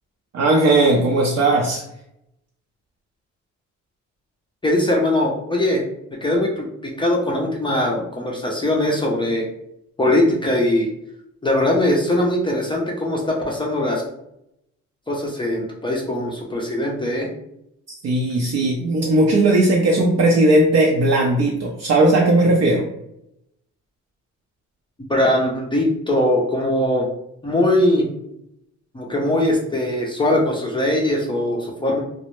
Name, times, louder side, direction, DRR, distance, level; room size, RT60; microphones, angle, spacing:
voice 1, 0.3-1.8 18.0-22.9, right 2 dB, 55° right, -1 dB, 0.5 m, -17 dB
voice 2, 4.6-5.8 6.2-9.5 10.0-10.9 11.4-14.0 15.1-17.3 25.1-27.1 27.4-28.1 28.9-32.0, left 1 dB, 15° left, -2 dB, 0.4 m, -21 dB
2.1 x 2.0 x 2.9 m, 0.79 s
cardioid pair, 90°, 30 cm